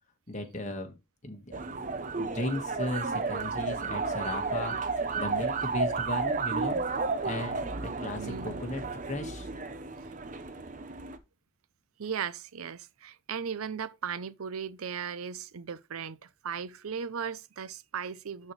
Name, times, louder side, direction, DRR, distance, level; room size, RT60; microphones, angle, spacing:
voice 1, 0.3-0.9 1.2-1.6 2.2-6.8 7.2-9.5, left 1 dB, 35° left, 1.4 m, -36 dB
sound 1, 1.5-11.2, right 4 dB, 35° right, 0.7 m, -32 dB
voice 2, 8.2-8.6 10.0-10.1 12.0-18.5, right 7 dB, 90° right, 0.6 m, -37 dB
12.0 x 4.3 x 3.2 m
head